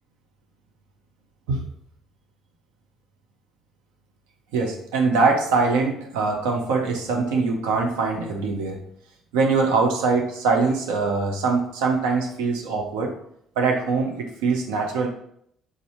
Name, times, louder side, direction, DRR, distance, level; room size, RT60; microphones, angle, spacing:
voice 1, 4.5-8.8 9.3-13.1 13.6-15.1, right 4 dB, 80° right, 2 dB, 0.7 m, -23 dB
3.7 x 2.7 x 4.3 m, 0.69 s
hypercardioid pair, 55°, 0 cm